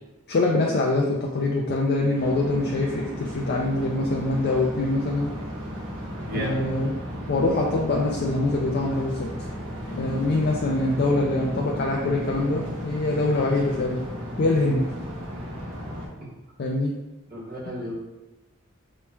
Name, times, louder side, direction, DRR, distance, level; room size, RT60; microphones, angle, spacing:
voice 1, 0.3-5.3 6.3-7.0 7.3-9.5 9.9-14.0 14.4-14.9 16.6-16.9, left 2 dB, 50° left, -2 dB, 0.4 m, -24 dB
sound 1, 2.1-16.1, equal, 80° right, 0.9 m, -34 dB
voice 2, 6.1-6.6 17.3-17.9, equal, 45° right, -7 dB, 1.2 m, -33 dB
4.4 x 3.0 x 2.2 m, 1.0 s
head